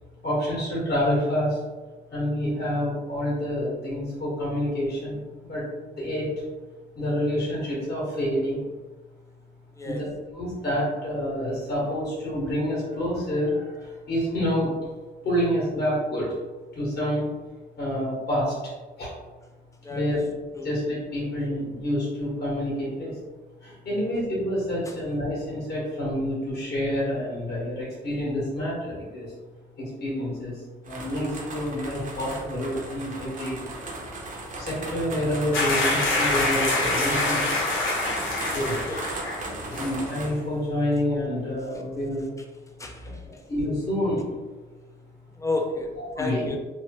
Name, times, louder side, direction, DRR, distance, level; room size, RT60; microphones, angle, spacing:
voice 1, 0.2-1.6 2.1-5.6 6.0-6.3 6.9-8.7 9.8-9.9 10.3-14.8 15.2-16.3 16.7-17.2 17.8-18.7 19.0-19.1 19.9-20.2 20.6-23.1 23.6-29.3 29.8-33.6 34.6-37.6 38.5-38.8 39.6-42.2 43.2-44.3 46.1-46.5, equal, 50° left, -7 dB, 1.4 m, -28 dB
voice 2, 9.7-10.1 19.8-20.2 20.5-20.7 23.9-24.0 24.9-25.0 38.5-39.1 42.8-43.2 45.3-46.6, left 2 dB, 15° left, 3 dB, 0.5 m, -32 dB
sound 1, 30.8-40.3, right 2 dB, 40° right, 0.7 m, -37 dB
sound 2, 35.5-39.5 39.7-39.9, left 2 dB, 80° left, 0.8 m, -25 dB
3.0 x 2.1 x 3.0 m, 1.3 s
cardioid pair, 90°, 20 cm